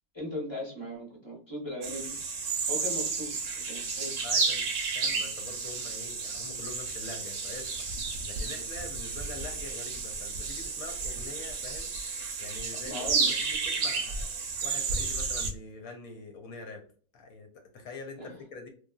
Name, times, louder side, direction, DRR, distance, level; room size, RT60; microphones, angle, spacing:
voice 1, 0.1-2.2 2.7-4.2 12.7-13.3 18.2-18.4, left 1 dB, 20° left, -2 dB, 0.7 m, -38 dB
sound 1, 1.8-15.5, right 4 dB, 65° right, 0.8 m, -32 dB
voice 2, 4.2-4.7 4.9-12.1 12.4-16.9 17.1-18.7, left 3 dB, 70° left, 4 dB, 1.0 m, -45 dB
3.1 x 2.3 x 2.3 m, 0.43 s
omnidirectional pair, 1.6 m